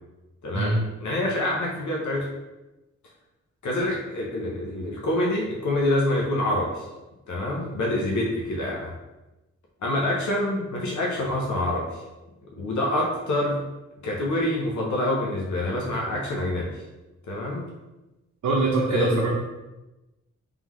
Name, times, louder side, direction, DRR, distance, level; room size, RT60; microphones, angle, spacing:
voice 1, 0.4-2.3 3.6-6.9 7.3-8.9 9.8-12.0 12.6-13.6 14.0-16.8 17.3-17.7 18.9-19.2, left 1 dB, 75° left, -2 dB, 0.8 m, -26 dB
voice 2, 18.4-19.3, right 3 dB, 70° right, -3 dB, 0.7 m, -23 dB
3.7 x 3.5 x 3.0 m, 1.0 s
wide cardioid pair, 175°, 29 cm